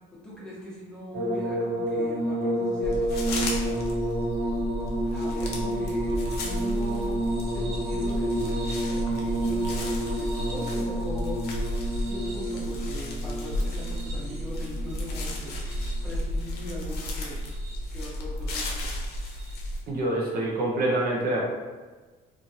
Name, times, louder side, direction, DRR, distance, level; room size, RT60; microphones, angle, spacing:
voice 1, 0.2-3.9 5.1-11.4 11.9-15.6 16.0-17.4 17.9-18.9, left 1 dB, 5° left, -8 dB, 1.1 m, -41 dB
sound 1, 1.1-16.4 17.3-18.0 19.4-19.5, right 1 dB, 75° right, 1.2 m, -30 dB
sound 2, 2.8-19.8, left 1 dB, 70° left, 0.7 m, -32 dB
voice 2, 19.9-21.5, right 1 dB, 60° right, -3 dB, 0.7 m, -26 dB
2.9 x 2.6 x 2.7 m, 1.3 s
cardioid pair, 110°, 17 cm